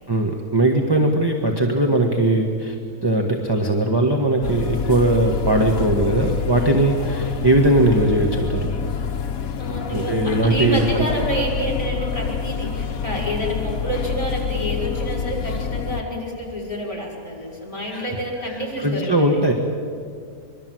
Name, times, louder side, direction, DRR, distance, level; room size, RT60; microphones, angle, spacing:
voice 1, 0.1-2.8 3.0-8.7 9.9-11.0 17.9-18.1 18.8-19.5, right 1 dB, 15° right, 2 dB, 1.6 m, -19 dB
sound 1, 4.4-16.0, left 6 dB, 65° left, 1.5 m, -27 dB
voice 2, 9.6-19.4, equal, 20° left, -3 dB, 6.2 m, -28 dB
26.0 x 22.5 x 7.8 m, 2.2 s
omnidirectional pair, 1.6 m